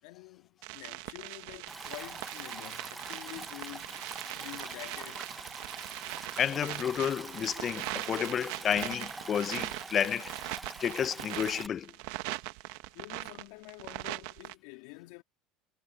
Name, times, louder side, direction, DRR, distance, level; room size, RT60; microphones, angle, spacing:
voice 1, 0.0-4.1 4.3-5.4 12.9-15.2, left 27 dB, 70° left, 2.5 m, -48 dB
sound 1, 0.6-14.5, right 23 dB, 70° right, 1.8 m, -41 dB
Stream, 1.7-11.7, right 2 dB, 10° right, 0.9 m, -44 dB
voice 2, 6.4-10.5 10.8-11.9, left 8 dB, 40° left, 0.9 m, -31 dB
hypercardioid pair, 85°, 0 cm